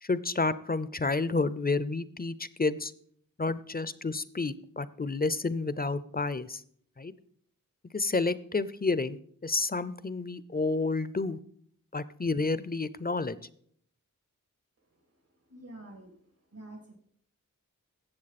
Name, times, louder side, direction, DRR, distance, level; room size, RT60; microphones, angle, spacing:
voice 1, 0.0-2.9 3.4-6.6 7.0-7.1 7.9-11.4 11.9-13.4, left 3 dB, 25° left, 16 dB, 0.5 m, -30 dB
voice 2, 15.5-16.1 16.5-17.0, right 1 dB, 80° right, 2 dB, 2.6 m, -47 dB
16.5 x 7.1 x 4.2 m, 0.64 s
wide cardioid pair, 55°, 34 cm